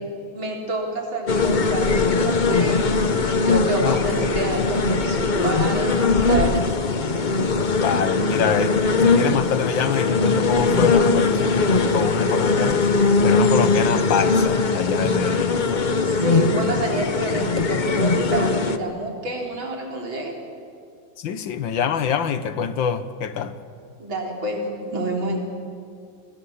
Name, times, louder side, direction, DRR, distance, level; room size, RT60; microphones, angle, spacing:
voice 1, 0.3-6.8 15.8-20.4 24.0-25.4, right 2 dB, 70° right, 4.4 m, -28 dB
sound 1, 1.3-18.8, left 4 dB, 50° left, 0.5 m, -20 dB
voice 2, 7.8-8.8 9.0-15.6 21.2-23.5, left 7 dB, 70° left, 1.7 m, -25 dB
29.0 x 19.5 x 7.2 m
omnidirectional pair, 2.3 m